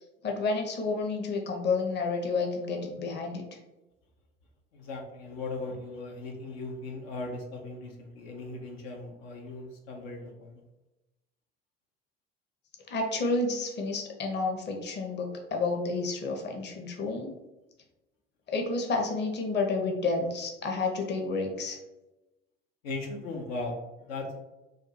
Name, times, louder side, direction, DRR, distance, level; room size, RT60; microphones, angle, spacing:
voice 1, 0.2-3.4 12.9-17.3 18.5-21.8, left 3 dB, 35° left, 2 dB, 0.8 m, -30 dB
voice 2, 4.7-10.6 22.8-24.4, left 2 dB, 75° left, 0 dB, 0.7 m, -38 dB
2.6 x 2.3 x 4.1 m, 1.0 s
hypercardioid pair, 65°, 30 cm